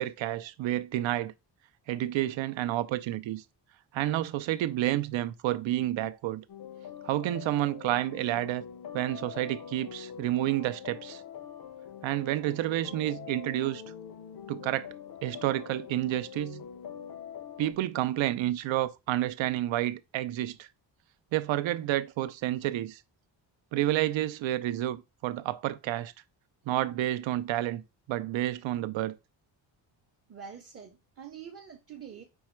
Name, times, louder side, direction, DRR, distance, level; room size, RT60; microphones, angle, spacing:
voice 1, 0.0-1.3 1.9-3.4 3.9-6.4 7.0-8.6 8.9-11.2 12.0-13.8 14.5-14.9 15.2-16.6 17.6-20.7 21.3-23.0 23.7-26.1 26.7-27.8 28.1-29.1, right 14 dB, 85° right, 0.6 m, -30 dB
sound 1, 6.5-17.7, left 8 dB, 50° left, 0.5 m, -44 dB
voice 2, 30.3-32.2, right 7 dB, 30° right, 0.6 m, -45 dB
5.4 x 2.3 x 4.3 m
wide cardioid pair, 165°, 45 cm